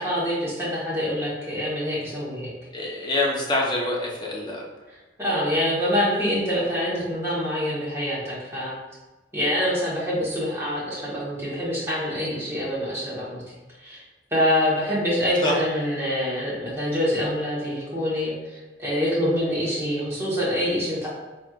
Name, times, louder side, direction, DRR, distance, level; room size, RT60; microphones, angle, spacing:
voice 1, 0.0-2.5 5.2-8.8 9.3-13.4 13.8-14.0 14.3-21.1, equal, 15° right, -8 dB, 1.4 m, -25 dB
voice 2, 2.7-4.6 15.4-15.6, left 1 dB, 25° left, -4 dB, 0.8 m, -25 dB
4.2 x 3.4 x 2.4 m, 1.2 s
head